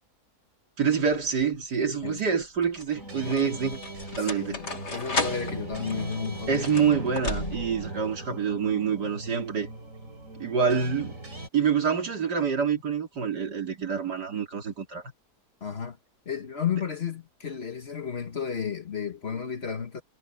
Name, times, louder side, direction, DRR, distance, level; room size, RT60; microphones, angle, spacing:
voice 1, 0.8-3.8 4.2-4.7 6.5-9.7 10.4-11.2 11.5-15.0, right 6 dB, 75° right, 3.5 m, -26 dB
sound 1, 1.1-1.5 2.4-7.9, left 3 dB, 80° left, 4.5 m, -35 dB
sound 2, 2.9-11.5, right 1 dB, 50° right, 5.2 m, -39 dB
voice 2, 4.1-6.7 15.6-16.0 16.2-20.0, left 7 dB, 40° left, 1.4 m, -33 dB
omnidirectional pair, 1.8 m